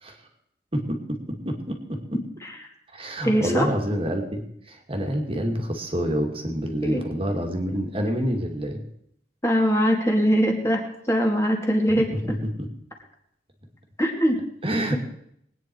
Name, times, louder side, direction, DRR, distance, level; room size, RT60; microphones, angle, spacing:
voice 1, 0.7-2.0 2.9-4.4 4.7-8.8 12.3-12.7 14.6-14.9, equal, 30° right, 3 dB, 2.2 m, -27 dB
voice 2, 3.2-3.7 6.8-7.0 9.4-12.3 14.0-14.4, equal, 15° left, 1 dB, 2.5 m, -22 dB
22.0 x 9.4 x 4.6 m, 0.73 s
head